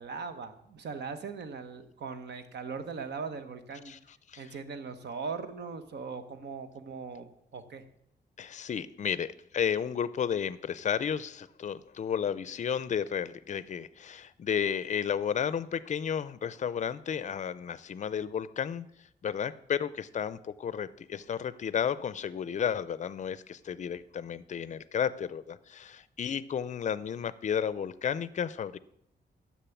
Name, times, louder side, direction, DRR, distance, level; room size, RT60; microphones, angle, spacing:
voice 1, 0.0-3.9 4.4-7.8, right 5 dB, 70° right, 10 dB, 1.1 m, -39 dB
voice 2, 8.4-18.9 19.2-28.8, left 8 dB, 40° left, 16 dB, 0.5 m, -32 dB
10.0 x 7.5 x 7.2 m, 0.75 s
wide cardioid pair, 160°, 18 cm